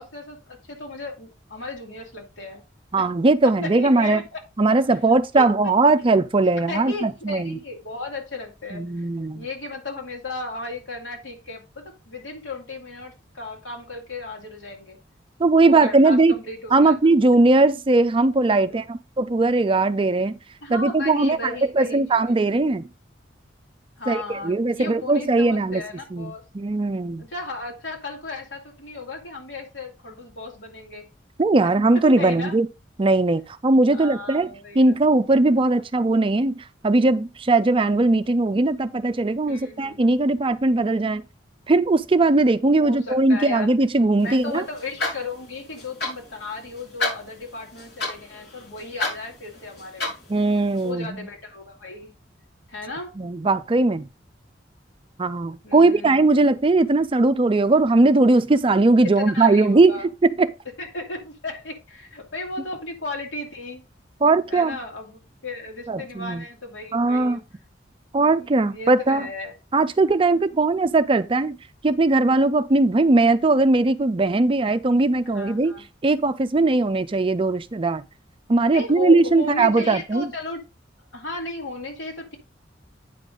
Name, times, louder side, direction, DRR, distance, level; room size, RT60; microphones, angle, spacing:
voice 1, 0.0-2.6 3.0-3.1 3.6-4.4 5.1-5.7 6.7-9.0 9.3-15.0 15.6-17.0 18.6-18.8 20.6-22.4 24.0-26.4 27.2-31.1 32.0-32.6 33.9-35.0 35.8-35.9 39.5-40.0 42.8-43.7 44.2-50.2 50.8-52.1 52.7-53.1 55.6-56.2 59.0-60.1 60.8-63.9 64.5-67.4 68.5-69.6 75.3-75.8 78.7-80.6 81.1-82.4, left 2 dB, 85° left, 2.5 m, -35 dB
voice 2, 2.9-4.2 4.6-7.6 8.7-9.5 15.4-16.3 16.7-20.4 20.7-22.9 24.1-25.8 26.1-27.2 31.4-32.7 33.0-34.5 34.8-41.2 41.7-44.6 50.3-51.3 53.2-54.1 55.2-60.0 60.4-60.5 64.2-64.8 65.9-66.4 66.9-67.4 68.1-69.3 69.7-71.6 71.8-75.7 76.0-78.0 78.5-80.3, right 2 dB, 30° right, 0.4 m, -19 dB
sound 1, 44.2-50.9, left 3 dB, 60° left, 4.3 m, -33 dB
9.1 x 5.2 x 3.9 m
head